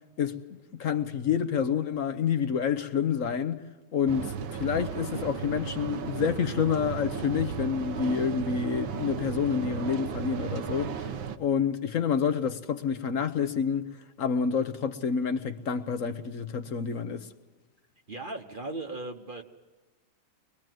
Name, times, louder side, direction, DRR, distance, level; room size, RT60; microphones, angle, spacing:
voice 1, 0.7-3.6 3.9-4.3 4.6-11.0 11.4-13.9 14.2-17.3, left 7 dB, 55° left, 1.0 m, -28 dB
sound 1, 4.1-11.4, right 7 dB, 75° right, 1.7 m, -35 dB
voice 2, 18.1-19.4, right 2 dB, 30° right, 1.1 m, -37 dB
24.0 x 21.5 x 7.7 m
omnidirectional pair, 2.2 m